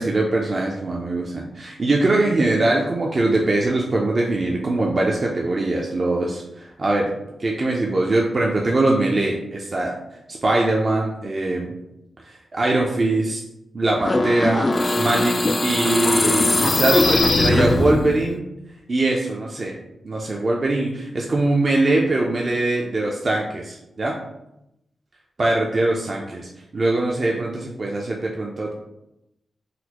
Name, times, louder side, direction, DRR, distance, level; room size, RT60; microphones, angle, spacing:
voice 1, 0.0-7.1 7.4-10.0 10.3-11.7 12.3-13.4 13.7-14.7 15.0-18.4 18.9-19.8 20.0-24.2 25.4-28.7, right 2 dB, 50° right, -1 dB, 0.5 m, -22 dB
sound 1, 14.0-18.3, left 2 dB, 40° left, 0.3 m, -20 dB
4.0 x 2.1 x 2.9 m, 0.87 s
cardioid pair, 50°, 0 cm